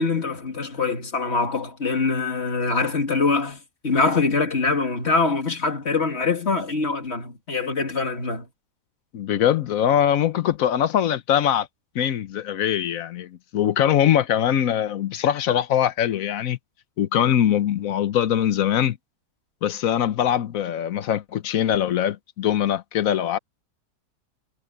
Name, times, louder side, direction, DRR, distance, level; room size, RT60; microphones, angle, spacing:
voice 1, 0.0-8.5, left 3 dB, 45° left, 2.4 m, -24 dB
voice 2, 9.1-11.7 11.9-16.6 17.0-19.0 19.6-23.4, left 10 dB, 65° left, 1.2 m, -22 dB
omnidirectional pair, 1.6 m